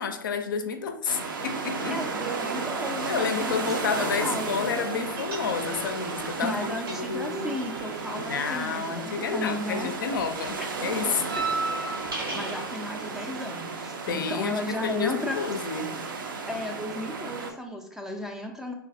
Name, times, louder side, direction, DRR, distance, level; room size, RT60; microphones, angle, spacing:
voice 1, 0.0-2.0 3.1-6.6 7.0-7.6 8.1-11.2 12.3-12.4 14.1-16.0, left 6 dB, 65° left, 6 dB, 0.4 m, -30 dB
sound 1, 1.1-17.5, right 4 dB, 65° right, 0.5 m, -34 dB
voice 2, 1.9-4.6 6.4-9.9 10.6-10.7 11.3-11.4 12.3-15.4 16.5-18.7, left 1 dB, 5° right, 3 dB, 0.3 m, -34 dB
Gate closing, 5.2-5.9 6.2-9.6 9.8-12.7, right 3 dB, 85° right, 1.0 m, -35 dB
3.1 x 2.4 x 2.5 m, 0.73 s
figure-of-eight pair, 95°, 12 cm